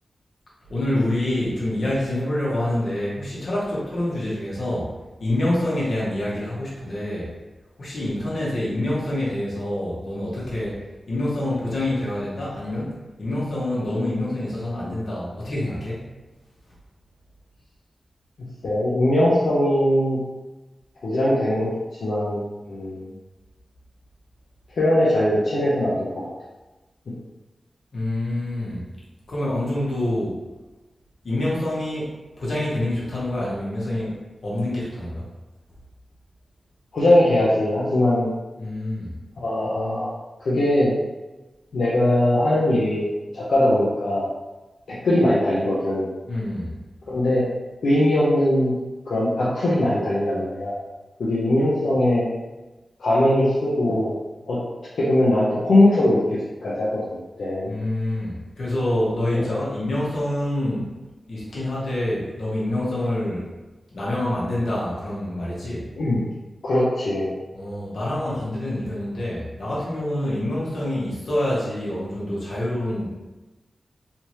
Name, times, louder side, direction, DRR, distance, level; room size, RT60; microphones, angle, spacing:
voice 1, 0.7-4.9 5.2-7.3 7.8-12.9 13.2-16.1 27.9-28.8 29.3-30.4 31.2-35.2 38.6-39.1 46.3-46.8 57.6-60.9 61.3-63.5 63.9-65.9 67.5-73.2, left 1 dB, 65° left, -7 dB, 1.3 m, -26 dB
voice 2, 18.6-20.2 21.0-21.7 22.0-23.1 24.8-26.3 36.9-38.3 39.4-40.1 40.4-40.9 41.7-44.2 44.9-46.1 47.1-47.4 47.8-48.7 49.1-50.7 51.2-52.2 53.0-54.2 54.5-54.6 54.9-56.2 56.6-57.7 59.3-59.6 66.0-66.2 66.6-67.3, left 1 dB, 90° left, -8 dB, 0.7 m, -20 dB
3.4 x 2.9 x 3.1 m, 1.1 s
wide cardioid pair, 140°, 0 cm